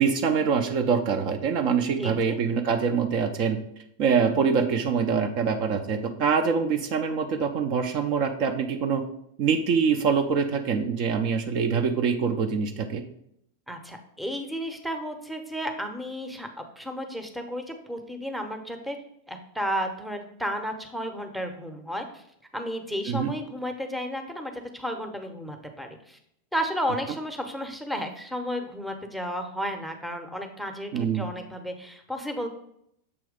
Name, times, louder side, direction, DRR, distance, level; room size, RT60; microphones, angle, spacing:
voice 1, 0.0-3.6 4.0-9.0 9.4-13.0 23.1-23.3 30.9-31.3, right 6 dB, 45° right, 5 dB, 0.5 m, -24 dB
voice 2, 2.0-2.4 13.7-19.0 19.3-22.2 22.5-26.2 26.5-32.5, equal, ahead, 5 dB, 0.8 m, -33 dB
6.9 x 3.1 x 5.0 m, 0.73 s
figure-of-eight pair, 90°, 0 cm